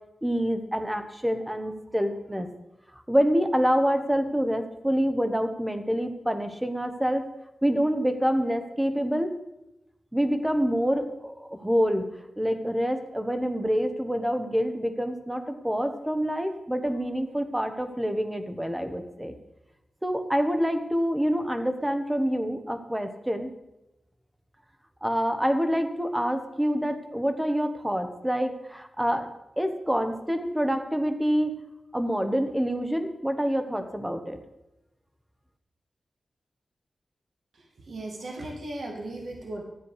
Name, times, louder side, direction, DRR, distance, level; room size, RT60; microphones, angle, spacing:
voice 1, 0.2-2.5 3.1-7.3 7.6-9.4 10.1-19.4 20.0-23.5 25.0-29.3 29.6-31.6 31.9-34.4, equal, 5° right, 8 dB, 1.0 m, -26 dB
voice 2, 37.9-39.6, right 1 dB, 65° right, 1 dB, 1.9 m, -36 dB
13.0 x 10.0 x 4.9 m, 0.93 s
wide cardioid pair, 140°, 0 cm